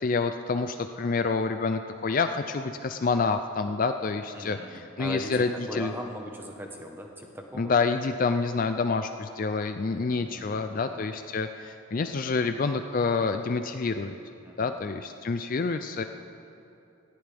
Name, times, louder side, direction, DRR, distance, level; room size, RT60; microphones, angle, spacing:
voice 1, 0.0-4.6 5.0-5.9 7.6-14.1 14.6-16.0, left 4 dB, 40° left, 8 dB, 0.4 m, -27 dB
voice 2, 4.3-7.7 9.9-11.0 14.4-14.8, equal, 10° right, 2 dB, 1.1 m, -40 dB
18.5 x 14.5 x 3.5 m, 2.9 s
head